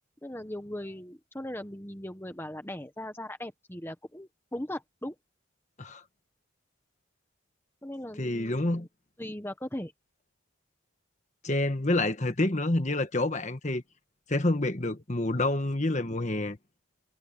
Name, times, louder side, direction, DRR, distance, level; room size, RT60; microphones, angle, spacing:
voice 1, 0.2-5.1 7.8-8.9 9.2-9.9, left 1 dB, 10° left, 1.2 m, -39 dB
voice 2, 8.2-8.9 11.4-13.8 14.3-16.6, left 2 dB, 35° left, 1.4 m, -28 dB
head